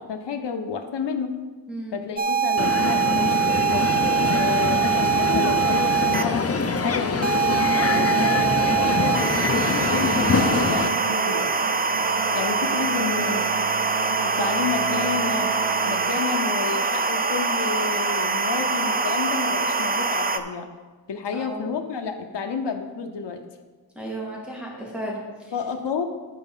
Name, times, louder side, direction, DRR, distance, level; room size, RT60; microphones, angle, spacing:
voice 1, 0.0-1.3 1.9-3.9 4.3-6.5 6.8-11.5 12.3-13.5 14.2-15.5 15.9-20.7 21.1-23.4 25.5-26.1, left 5 dB, 75° left, 5 dB, 0.7 m, -30 dB
voice 2, 1.7-2.0 21.3-21.7 24.0-25.5, right 1 dB, 5° right, -4 dB, 2.3 m, -34 dB
sound 1, 2.2-6.2 7.2-20.4, right 5 dB, 20° right, 0.4 m, -23 dB
Crowd, 2.6-10.9, left 4 dB, 35° left, 0.6 m, -24 dB
Musical instrument, 7.9-16.4, right 8 dB, 85° right, 0.5 m, -33 dB
10.5 x 4.8 x 5.5 m, 1.3 s
wide cardioid pair, 95°, 42 cm